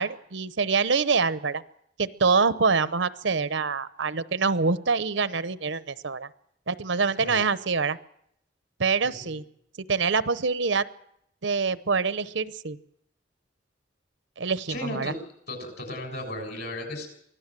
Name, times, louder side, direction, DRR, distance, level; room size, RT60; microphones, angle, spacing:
voice 1, 0.0-1.6 2.0-6.3 6.7-8.0 8.8-9.4 9.9-10.8 11.4-12.8 14.4-15.1, right 4 dB, 70° right, 15 dB, 0.8 m, -25 dB
voice 2, 14.7-15.1 15.5-17.1, left 1 dB, 55° left, 5 dB, 6.7 m, -35 dB
24.0 x 16.0 x 7.5 m, 0.74 s
head